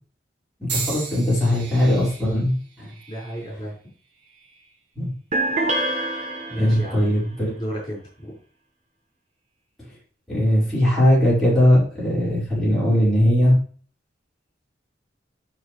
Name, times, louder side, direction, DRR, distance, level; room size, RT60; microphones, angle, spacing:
voice 1, 0.6-2.9 4.9-5.1 6.6-7.5 10.3-13.6, equal, ahead, -9 dB, 5.0 m, -19 dB
sound 1, 0.7-4.8 5.5-6.0 6.9-7.1, right 4 dB, 75° right, 2.6 m, -37 dB
voice 2, 3.1-3.7 6.5-7.0 7.5-8.3, equal, 25° left, -6 dB, 5.0 m, -32 dB
sound 2, 5.3-7.1, right 2 dB, 35° right, 1.4 m, -25 dB
11.5 x 6.3 x 3.2 m, 0.43 s
head